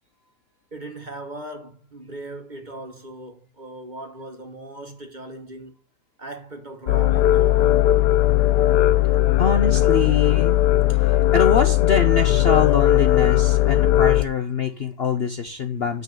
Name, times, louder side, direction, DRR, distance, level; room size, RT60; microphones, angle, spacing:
voice 1, 0.7-5.7 6.2-7.9, right 1 dB, 30° right, 1.1 m, -38 dB
sound 1, 6.9-14.2, left 14 dB, 80° left, 1.2 m, -18 dB
voice 2, 9.4-10.6 11.0-16.0, left 5 dB, 50° left, 0.8 m, -24 dB
9.2 x 4.0 x 6.6 m
omnidirectional pair, 1.8 m